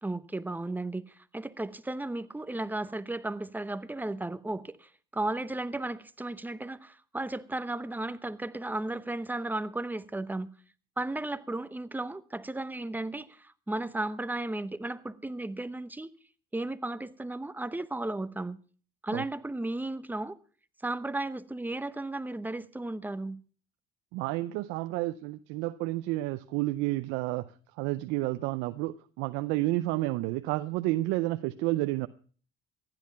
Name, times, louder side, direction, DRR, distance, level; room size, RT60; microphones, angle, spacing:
voice 1, 0.0-10.5 11.0-16.1 16.5-18.6 19.0-20.4 20.8-23.4, right 2 dB, 10° right, 0.9 m, -34 dB
voice 2, 24.1-32.1, right 18 dB, 90° right, 0.6 m, -30 dB
15.5 x 11.0 x 5.7 m
supercardioid pair, 90°, 19 cm